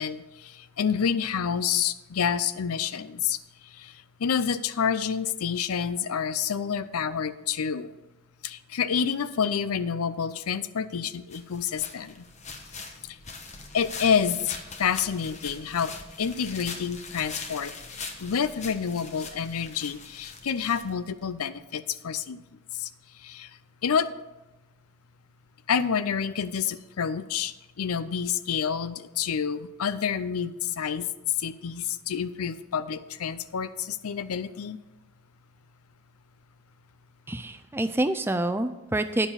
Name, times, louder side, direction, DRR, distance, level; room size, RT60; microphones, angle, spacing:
voice 1, 0.0-3.4 3.7-7.9 8.4-12.2 13.1-13.2 13.7-17.7 18.2-22.4 22.7-22.9 23.2-23.5 23.8-24.1 25.7-31.1 31.4-34.8, left 7 dB, 85° left, 15 dB, 0.5 m, -28 dB
sound 1, 11.3-21.3, left 4 dB, 30° left, 1.0 m, -42 dB
voice 2, 37.3-39.3, right 1 dB, 10° right, 9 dB, 0.4 m, -27 dB
9.9 x 7.1 x 5.6 m, 1.0 s
head